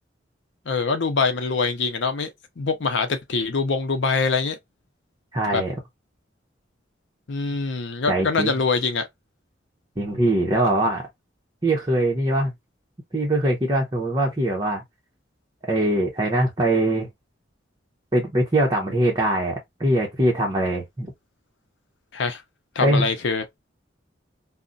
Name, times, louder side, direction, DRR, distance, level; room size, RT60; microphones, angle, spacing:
voice 1, 0.7-2.3 2.6-4.6 5.5-5.6 7.3-9.1 22.1-22.4 22.8-23.5, left 4 dB, 75° left, 0.6 m, -24 dB
voice 2, 5.3-5.7 8.1-8.6 10.0-11.1 11.6-12.5 13.1-14.8 15.7-17.1 18.1-21.1 22.8-23.1, right 1 dB, 20° right, 0.8 m, -22 dB
2.4 x 2.1 x 3.8 m
head